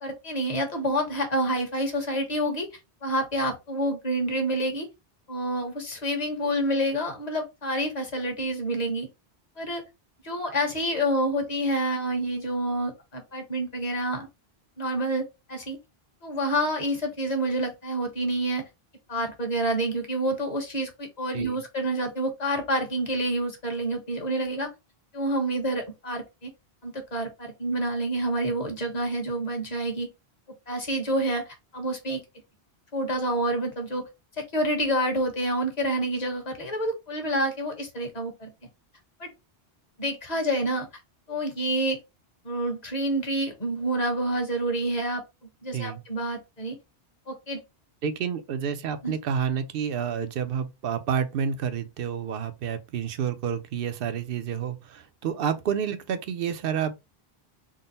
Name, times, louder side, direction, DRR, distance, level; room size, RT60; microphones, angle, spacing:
voice 1, 0.0-2.7 3.0-4.9 5.3-9.1 9.6-9.8 10.2-14.3 14.8-15.8 16.2-18.6 19.1-24.7 25.1-26.5 26.8-30.1 30.7-31.4 31.7-32.2 32.9-34.0 34.4-38.5 39.2-39.3 40.0-40.9 41.3-42.0 42.4-45.2 45.6-46.7 47.3-47.6 49.0-49.1, right 1 dB, 40° left, 1.2 m, -28 dB
voice 2, 48.0-56.9, right 7 dB, 65° right, 0.8 m, -29 dB
3.7 x 2.0 x 3.9 m
omnidirectional pair, 1.1 m